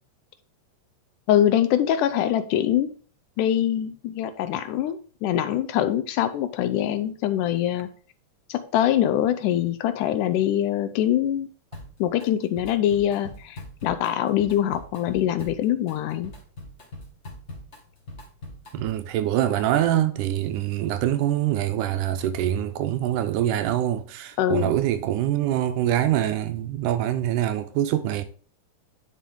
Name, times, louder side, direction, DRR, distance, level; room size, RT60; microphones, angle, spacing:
voice 1, 1.3-2.9 3.4-7.9 8.5-11.5 12.0-16.3 24.4-24.7, left 11 dB, 80° left, 2.0 m, -23 dB
Drum kit, 11.7-12.3 12.6-19.1, left 1 dB, 25° left, 1.5 m, -42 dB
voice 2, 18.7-28.2, right 12 dB, 80° right, 2.0 m, -24 dB
10.0 x 5.0 x 3.7 m
omnidirectional pair, 3.9 m